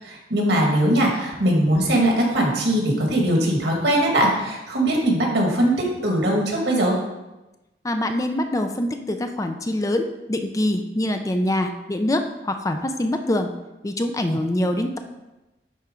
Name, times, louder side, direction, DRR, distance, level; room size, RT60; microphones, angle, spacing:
voice 1, 0.0-5.7 6.0-7.0, right 1 dB, 75° right, -1 dB, 2.0 m, -20 dB
voice 2, 7.8-13.5 13.8-15.0, left 1 dB, 20° left, 6 dB, 0.4 m, -24 dB
10.5 x 4.3 x 3.8 m, 1.0 s
head